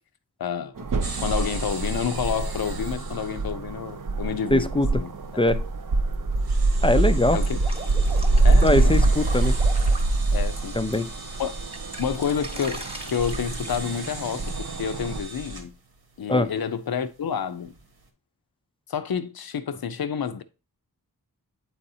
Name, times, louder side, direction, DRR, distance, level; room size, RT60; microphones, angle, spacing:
voice 1, 0.4-0.9 1.2-4.7 4.9-5.1 7.3-7.6 8.4-9.2 10.3-10.8 11.4-11.5 12.0-15.7 16.2-17.7 18.9-20.4, left 7 dB, 70° left, 0.6 m, -29 dB
sound 1, 0.8-15.2, right 2 dB, 60° right, 0.7 m, -24 dB
sound 2, 1.0-18.1, right 3 dB, 80° right, 1.2 m, -42 dB
voice 2, 4.5-5.0 5.4-5.7 6.8-7.4 8.6-9.5 10.8-11.1 16.3-16.5, left 1 dB, 15° left, 0.4 m, -22 dB
Drip, 7.4-10.9 11.3-14.5, right 2 dB, 15° right, 1.0 m, -40 dB
8.5 x 4.2 x 2.7 m
wide cardioid pair, 60°, 38 cm